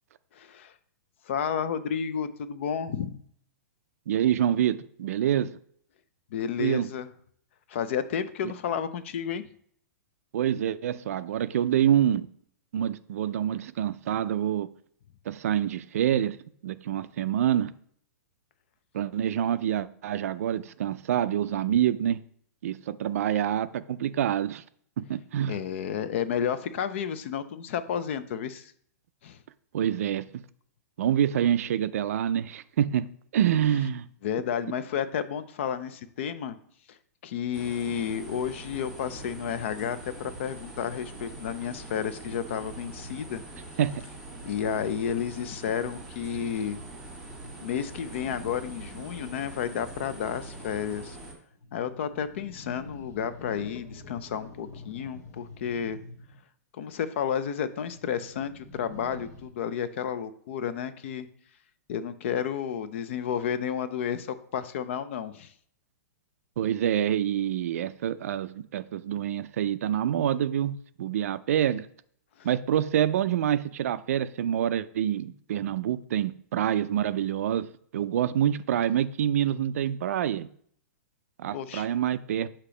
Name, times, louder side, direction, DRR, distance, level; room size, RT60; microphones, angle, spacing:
voice 1, 0.3-0.7 1.3-3.2 6.3-7.1 7.7-9.4 25.5-28.7 29.2-29.4 34.2-36.6 37.2-43.4 44.4-46.8 47.6-51.2 51.7-56.0 56.7-61.3 61.9-65.5 72.4-72.5 81.5-81.9, left 8 dB, 45° left, 0.5 m, -31 dB
voice 2, 4.1-5.5 6.6-6.9 10.3-12.3 12.7-14.7 15.3-16.4 16.6-17.7 18.9-22.2 22.6-24.6 25.0-25.6 29.7-30.2 31.0-33.1 33.3-34.1 43.8-43.9 66.6-71.9 72.4-77.7 77.9-80.5 81.4-82.5, right 10 dB, 60° right, 0.4 m, -26 dB
sound 1, 37.5-51.3, right 2 dB, 5° right, 1.4 m, -43 dB
sound 2, 48.2-48.9 49.8-50.7 51.5-56.4 57.8-59.5, left 2 dB, 65° left, 1.4 m, -47 dB
6.6 x 2.9 x 5.0 m
hypercardioid pair, 165°, 9 cm